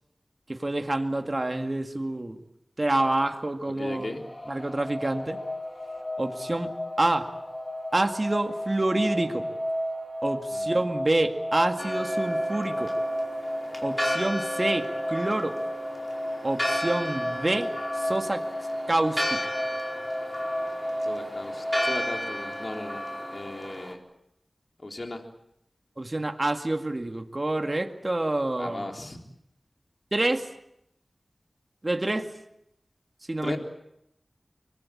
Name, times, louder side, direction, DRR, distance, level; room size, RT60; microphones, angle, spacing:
voice 1, 0.5-2.4 2.8-4.2 4.5-5.4 6.2-6.7 7.0-7.3 7.9-9.5 10.2-12.9 13.8-15.6 16.4-17.7 17.9-18.4 18.9-19.4 26.0-28.9 30.1-30.5 31.8-32.3 33.3-33.6, right 2 dB, 40° right, 5 dB, 2.0 m, -27 dB
voice 2, 3.7-4.2 10.5-10.9 21.0-23.0 23.3-24.0 24.8-25.2 28.6-29.2 33.4-33.6, left 2 dB, 55° left, 3 dB, 3.7 m, -36 dB
sound 1, 3.9-22.0, equal, 30° left, 2.4 m, -33 dB
Church bell, 11.8-23.9, equal, 10° left, 4.7 m, -33 dB
24.5 x 21.5 x 8.8 m, 0.78 s
cardioid pair, 40°, 0 cm